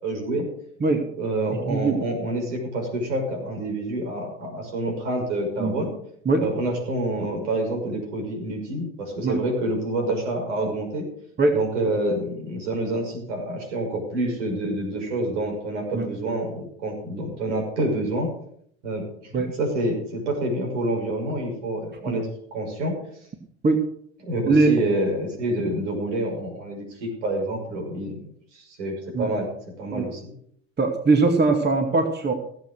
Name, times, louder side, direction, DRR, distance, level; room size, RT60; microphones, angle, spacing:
voice 1, 0.0-0.5 1.1-5.9 6.4-11.0 11.5-18.3 18.8-22.9 24.2-28.2 28.5-29.5 29.8-30.3, right 1 dB, 80° right, 2 dB, 6.0 m, -27 dB
voice 2, 1.6-2.0 5.6-5.8 6.3-6.4 9.2-9.4 11.4-11.6 15.9-16.1 19.3-19.5 22.1-22.2 23.6-23.8 24.5-24.7 29.1-29.3 29.9-30.1 30.8-32.3, right 3 dB, 30° right, 4 dB, 2.3 m, -21 dB
17.0 x 8.0 x 6.4 m, 0.65 s
hypercardioid pair, 70°, 35 cm